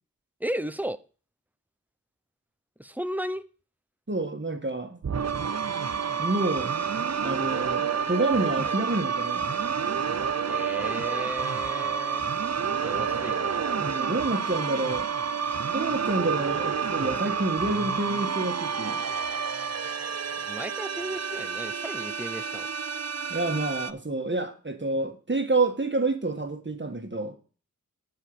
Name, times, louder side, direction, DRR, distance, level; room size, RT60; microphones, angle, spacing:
voice 1, 0.4-1.0 2.8-3.4 10.5-12.3 12.8-13.8 20.4-22.7, equal, 5° right, 0.7 m, -35 dB
voice 2, 4.1-5.0 6.2-6.7 7.2-9.5 12.9-13.0 13.8-15.1 15.7-19.0 23.3-27.4, right 2 dB, 35° right, 1.7 m, -28 dB
sound 1, 5.0-23.9, right 6 dB, 55° right, 0.7 m, -29 dB
11.5 x 4.9 x 6.8 m
wide cardioid pair, 65°, 31 cm